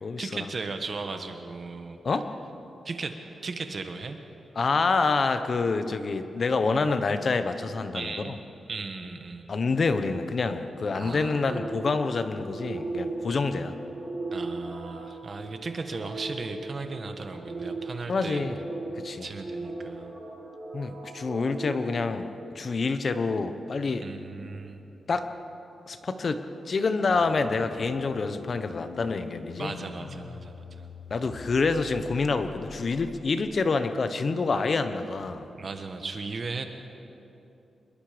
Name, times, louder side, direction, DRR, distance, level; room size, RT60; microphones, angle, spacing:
voice 1, 0.2-2.0 2.8-4.2 7.9-8.4 8.7-9.4 10.9-11.6 14.3-18.4 19.2-20.1 24.0-24.8 29.6-30.9 35.6-36.6, right 4 dB, 40° right, 6 dB, 1.3 m, -36 dB
voice 2, 4.6-8.4 9.5-13.7 18.1-18.6 18.9-19.3 20.7-22.3 22.5-24.1 25.1-25.3 25.9-29.7 31.1-35.5, left 4 dB, 40° left, 9 dB, 1.0 m, -27 dB
sound 1, 11.4-22.7, right 2 dB, 10° right, 6.4 m, -38 dB
sound 2, 27.1-33.7, left 7 dB, 90° left, 0.9 m, -44 dB
26.5 x 21.5 x 5.1 m, 2.9 s
wide cardioid pair, 155°, 0 cm